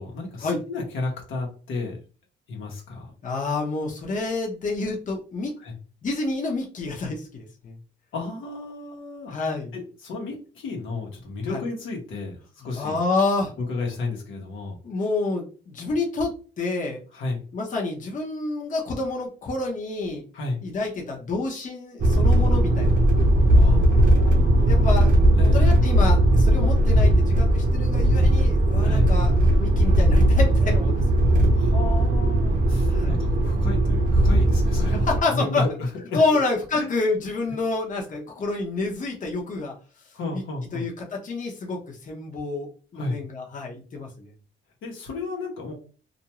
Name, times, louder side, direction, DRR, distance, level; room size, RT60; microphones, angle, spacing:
voice 1, 0.0-2.0 2.5-3.1 5.6-5.7 8.1-9.3 9.7-13.0 13.6-14.8 17.1-17.4 20.3-20.6 23.5-25.0 25.4-26.0 28.8-29.1 31.5-36.4 36.7-37.0 37.5-37.6 40.1-40.9 42.9-43.2 44.8-45.7, left 3 dB, 80° left, 0 dB, 1.0 m, -32 dB
voice 2, 3.2-5.6 6.0-7.8 9.3-9.7 11.5-11.6 12.8-13.5 14.8-17.0 17.5-20.2 20.6-22.9 24.6-25.1 25.5-29.3 29.6-31.4 32.9-33.2 34.9-35.6 36.1-39.7 40.3-40.4 40.7-44.3, left 3 dB, 40° left, 0 dB, 0.8 m, -28 dB
sound 1, 22.0-35.2, right 1 dB, 45° right, 0.7 m, -18 dB
2.5 x 2.2 x 2.9 m, 0.37 s
cardioid pair, 90°, 20 cm